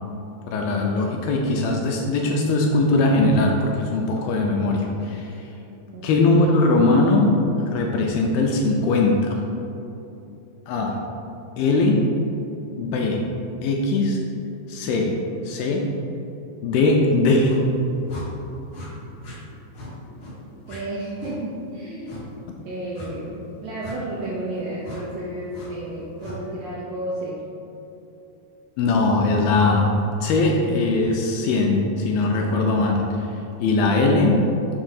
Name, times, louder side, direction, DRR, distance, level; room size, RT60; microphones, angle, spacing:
voice 1, 0.5-5.3 6.0-7.4 7.7-9.4 10.7-11.0 11.6-12.1 12.8-13.2 13.6-14.2 14.7-15.2 15.5-15.9 16.6-17.6 28.8-33.3 33.6-34.4, left 2 dB, 80° left, 0 dB, 2.2 m, -20 dB
voice 2, 5.9-6.5 20.7-22.3 22.6-27.4, right 1 dB, 80° right, -6 dB, 1.8 m, -32 dB
sound 1, 17.4-17.6 18.1-18.3 18.7-18.9 19.2-19.4 19.7-19.9 20.2-20.3 20.6-20.8 21.2-21.4 22.0-22.2 22.9-23.1 23.8-24.0 24.8-25.0 25.5-25.7 26.2-26.4, equal, 55° left, 1.7 m, -38 dB
7.5 x 2.7 x 5.7 m, 2.9 s
omnidirectional pair, 4.5 m